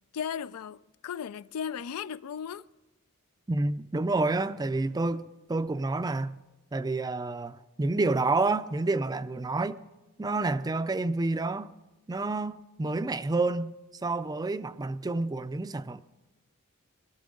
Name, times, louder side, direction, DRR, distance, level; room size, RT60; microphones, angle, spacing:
voice 1, 0.1-2.6, left 7 dB, 85° left, 0.4 m, -36 dB
voice 2, 3.5-6.4 6.7-9.8 10.2-11.7 12.1-13.7 14.0-16.0, right 3 dB, 15° right, 0.4 m, -29 dB
22.0 x 13.5 x 3.8 m
head